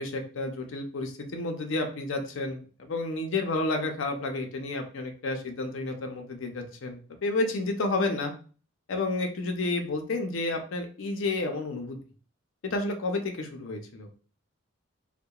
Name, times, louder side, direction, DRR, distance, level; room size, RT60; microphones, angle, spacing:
voice 1, 0.0-8.3 8.9-12.0 12.6-14.1, left 2 dB, 60° left, 4 dB, 0.5 m, -31 dB
2.8 x 2.1 x 2.2 m, 0.38 s
head